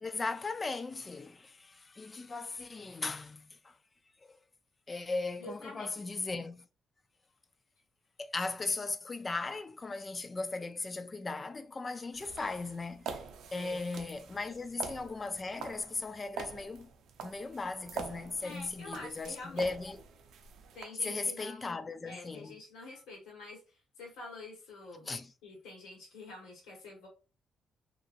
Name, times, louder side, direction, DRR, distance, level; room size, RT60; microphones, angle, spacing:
voice 1, 0.0-3.8 4.2-4.4 4.9-6.7 8.2-13.2 13.5-16.9 17.2-20.0 21.0-22.6 25.1-25.3, left 3 dB, 30° left, 0.3 m, -37 dB
voice 2, 5.4-5.9 13.5-13.8 14.4-14.5 18.4-19.8 20.7-25.1 25.4-27.1, left 2 dB, 85° left, 1.5 m, -47 dB
sound 1, 12.1-20.8, right 6 dB, 80° right, 0.5 m, -46 dB
2.9 x 2.5 x 2.5 m
cardioid pair, 90°, 0 cm